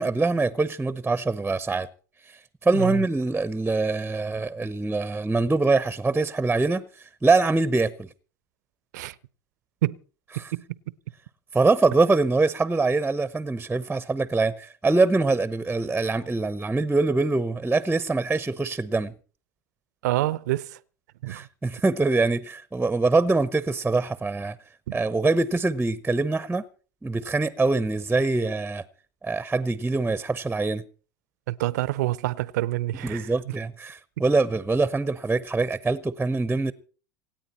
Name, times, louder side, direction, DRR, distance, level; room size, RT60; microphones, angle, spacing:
voice 1, 0.0-1.9 2.3-8.1 10.4-10.5 11.5-19.1 21.3-24.6 24.9-26.6 27.0-28.8 29.2-30.8 33.0-36.7, right 3 dB, 10° right, 0.9 m, -24 dB
voice 2, 10.5-10.9 20.0-20.8 21.2-21.5 31.5-33.3, right 16 dB, 75° right, 0.8 m, -27 dB
26.5 x 9.0 x 4.3 m
hypercardioid pair, 85°, 9 cm